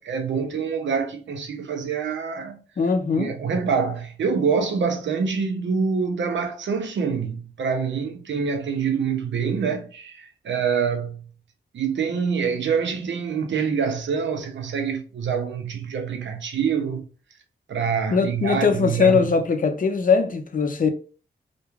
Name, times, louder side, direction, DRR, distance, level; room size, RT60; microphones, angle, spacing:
voice 1, 0.0-2.6 3.1-11.3 11.7-17.1 17.7-19.3, right 6 dB, 85° right, 0.5 m, -26 dB
voice 2, 2.8-3.3 18.1-20.9, left 5 dB, 50° left, 0.5 m, -20 dB
2.3 x 2.1 x 3.0 m
wide cardioid pair, 85°, 18 cm